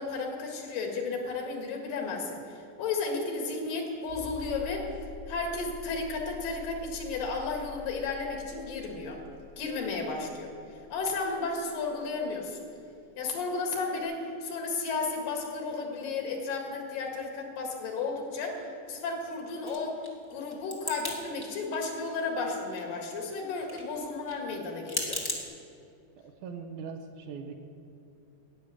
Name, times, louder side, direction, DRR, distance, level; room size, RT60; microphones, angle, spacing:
voice 1, 0.0-4.9 5.3-9.2 9.6-10.5 10.9-12.6 13.2-20.0 20.3-25.2, left 4 dB, 85° left, 2 dB, 3.5 m, -33 dB
sound 1, 4.1-12.5 14.0-14.1, left 5 dB, 30° right, 1.3 m, -47 dB
sound 2, 19.6-21.2 21.4-22.1 22.4-25.4, left 1 dB, 15° left, 0.7 m, -36 dB
voice 2, 26.2-27.5, right 5 dB, 75° right, 4 dB, 2.2 m, -40 dB
11.5 x 8.7 x 9.2 m, 2.5 s
omnidirectional pair, 3.9 m